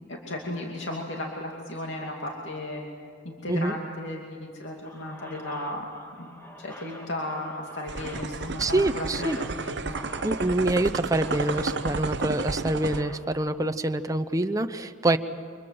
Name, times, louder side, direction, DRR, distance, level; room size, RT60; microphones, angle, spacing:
voice 1, 0.1-2.8 3.2-5.9 6.2-9.9, left 1 dB, 70° left, -1 dB, 2.6 m, -35 dB
sound 1, 4.8-13.5, equal, 10° left, 2.1 m, -47 dB
sound 2, 7.9-13.0, right 4 dB, 60° right, 0.7 m, -32 dB
voice 2, 8.6-9.4 10.2-15.2, right 2 dB, 15° right, 8 dB, 0.7 m, -26 dB
29.0 x 25.5 x 7.7 m, 2.3 s
head